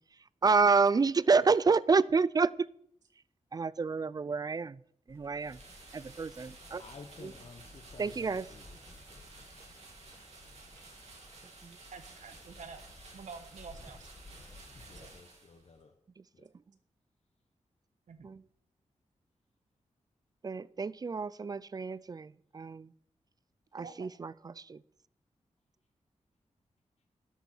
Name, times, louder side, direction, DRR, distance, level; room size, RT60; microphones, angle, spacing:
voice 1, 0.4-2.7 3.5-4.8 5.1-5.6 5.9-6.8 8.0-8.4 11.6-11.8 18.2-18.4 20.4-22.9 23.7-24.8, right 4 dB, 30° right, 0.4 m, -29 dB
sound 1, 5.1-15.1, left 2 dB, 20° left, 1.7 m, -56 dB
sound 2, 5.4-15.8, right 3 dB, 60° right, 3.0 m, -54 dB
voice 2, 6.8-9.5 14.7-15.9 16.3-16.5, left 4 dB, 60° left, 1.3 m, -53 dB
voice 3, 11.9-12.8 13.1-14.1 14.8-15.1 18.1-18.4 23.8-24.1, right 5 dB, 90° right, 1.3 m, -48 dB
12.5 x 10.0 x 4.5 m
wide cardioid pair, 110°, 12 cm